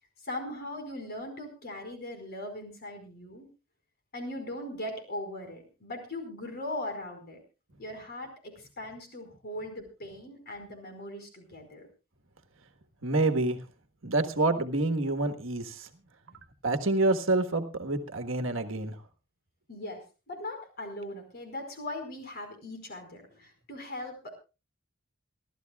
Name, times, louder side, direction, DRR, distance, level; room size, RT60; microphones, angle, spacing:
voice 1, 0.2-3.5 4.1-7.4 7.8-11.9 19.7-24.4, left 1 dB, 45° left, 5 dB, 4.9 m, -39 dB
voice 2, 13.0-13.6 14.0-15.9 16.6-18.9, right 2 dB, 65° right, 6 dB, 1.5 m, -27 dB
27.5 x 13.0 x 2.4 m, 0.30 s
head